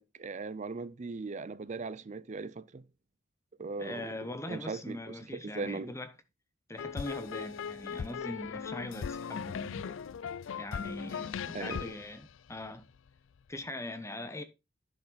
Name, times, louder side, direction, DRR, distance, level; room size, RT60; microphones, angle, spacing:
voice 1, 0.0-2.9 3.6-4.1 4.5-5.9 11.5-11.8, right 3 dB, 40° right, 0.5 m, -39 dB
voice 2, 3.8-6.1 6.7-10.1 10.6-12.9 13.5-14.4, left 1 dB, 15° left, 0.9 m, -41 dB
sound 1, 6.8-13.1, left 7 dB, 75° left, 0.4 m, -39 dB
10.5 x 6.1 x 4.1 m
head